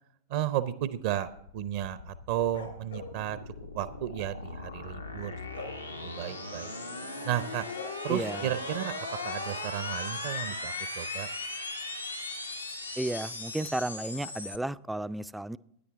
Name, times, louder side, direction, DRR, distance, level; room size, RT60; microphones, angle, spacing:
voice 1, 0.3-3.4 3.7-5.3 6.0-6.7 7.2-7.7 8.0-8.9 9.2-11.3, right 12 dB, 50° right, 14 dB, 0.6 m, -33 dB
sound 1, 0.9-14.6, left 2 dB, 85° left, 1.0 m, -38 dB
sound 2, 2.5-3.2 5.5-5.8 7.7-7.9, left 4 dB, 70° left, 2.4 m, -42 dB
voice 2, 8.1-8.6 13.0-15.6, right 1 dB, 5° right, 15 dB, 0.3 m, -33 dB
13.5 x 9.9 x 3.4 m, 0.73 s
figure-of-eight pair, 90°, 0 cm